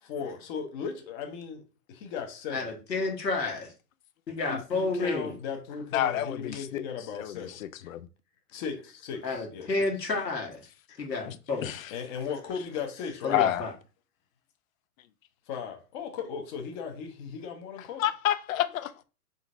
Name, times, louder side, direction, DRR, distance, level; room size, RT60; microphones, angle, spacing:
voice 1, 0.0-1.6 1.9-2.7 4.5-7.6 8.5-9.9 10.9-11.0 11.9-13.4 15.5-18.0, left 6 dB, 30° left, 0.7 m, -37 dB
voice 2, 2.5-3.7 4.3-5.4 9.2-10.6 11.0-11.7 13.2-13.7, left 3 dB, 90° left, 1.5 m, -30 dB
voice 3, 5.9-6.9 7.1-8.1 11.3-11.4 11.6-12.0 13.3-13.7 18.0-19.0, left 12 dB, 60° left, 0.5 m, -29 dB
4.7 x 3.8 x 2.5 m
hypercardioid pair, 120°, 48 cm